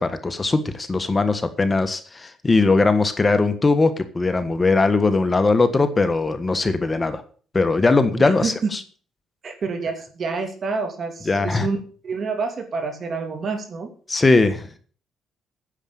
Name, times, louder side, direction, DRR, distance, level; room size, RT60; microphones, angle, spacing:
voice 1, 0.0-7.2 7.5-8.8 11.3-11.7 14.1-14.8, left 3 dB, 25° left, 10 dB, 1.5 m, -20 dB
voice 2, 8.2-8.7 9.4-11.8 12.0-13.9, right 4 dB, 50° right, 6 dB, 2.9 m, -28 dB
10.0 x 7.3 x 8.9 m, 0.42 s
cardioid pair, 90°, 0 cm